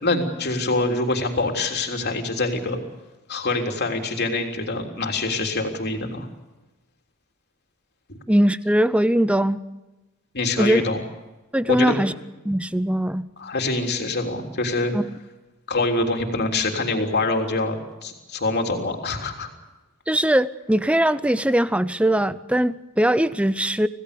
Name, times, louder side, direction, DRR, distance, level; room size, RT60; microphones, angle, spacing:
voice 1, 0.0-2.8 3.3-6.3 10.3-11.0 11.7-11.9 13.4-14.9 15.7-19.5, left 2 dB, 50° left, 4 dB, 3.5 m, -25 dB
voice 2, 8.3-9.6 10.6-10.8 11.5-12.1 12.4-13.3 14.9-15.0 20.1-23.9, right 1 dB, 5° right, 15 dB, 0.7 m, -20 dB
27.0 x 17.5 x 6.8 m, 1.1 s
head